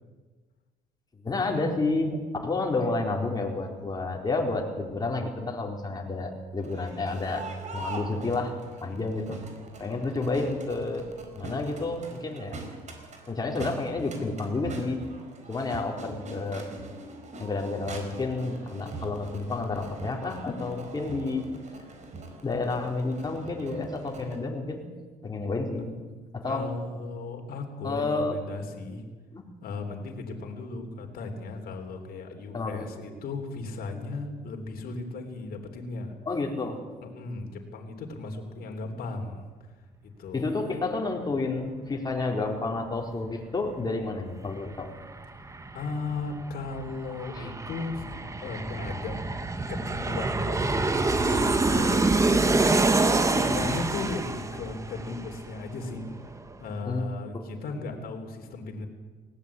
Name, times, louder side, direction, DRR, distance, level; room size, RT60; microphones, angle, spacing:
voice 1, 1.2-7.5 7.7-8.5 8.8-9.4 9.8-11.1 11.4-12.5 13.3-15.0 15.5-16.7 17.4-21.5 22.4-24.8 25.2-25.9 26.3-26.7 27.8-28.4 29.3-29.4 32.5-32.9 36.3-36.8 40.3-44.9 47.3-47.5 56.9-57.1 57.3-57.4, left 3 dB, 25° left, 1 dB, 4.2 m, -30 dB
Crowd, 6.6-24.4, right 2 dB, 45° right, 4.6 m, -43 dB
voice 2, 8.8-9.2 26.4-29.0 29.6-36.1 37.1-39.4 40.0-40.5 45.4-49.2 49.7-50.8 51.2-52.1 53.2-56.0 56.6-58.9, left 3 dB, 60° left, 4 dB, 3.6 m, -36 dB
Aircraft, 44.3-44.4 44.7-56.0 56.3-56.4, right 3 dB, 20° right, 1.4 m, -26 dB
19.5 x 17.5 x 8.6 m, 1.4 s
cardioid pair, 110°, 17 cm